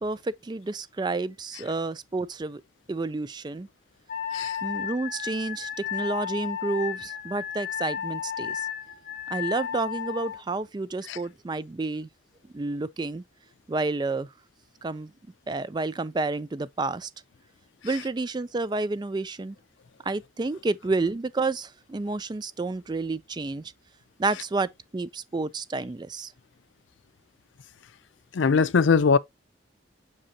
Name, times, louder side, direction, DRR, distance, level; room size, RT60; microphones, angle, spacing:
voice 1, 0.0-2.6 2.9-3.7 4.6-8.7 9.3-12.1 12.5-13.2 13.7-14.3 14.8-15.1 15.5-17.1 17.8-19.6 20.1-23.7 24.2-26.3, right 3 dB, 25° right, 0.3 m, -30 dB
Wind instrument woodwind instrument, 4.1-10.4, left 8 dB, 45° left, 1.3 m, -33 dB
voice 2, 28.3-29.2, left 5 dB, 80° left, 0.5 m, -21 dB
7.7 x 5.5 x 2.7 m
head